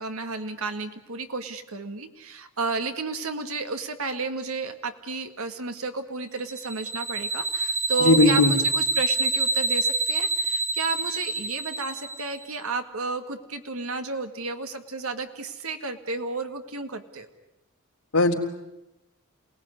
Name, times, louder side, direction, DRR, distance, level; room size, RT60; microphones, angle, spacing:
voice 1, 0.0-17.3, right 4 dB, 70° right, 7 dB, 2.0 m, -32 dB
sound 1, 6.5-12.4, right 3 dB, 30° right, 1.7 m, -26 dB
voice 2, 8.0-8.6 18.1-18.3, left 2 dB, 80° left, 0 dB, 3.7 m, -18 dB
28.0 x 19.5 x 9.8 m, 0.98 s
head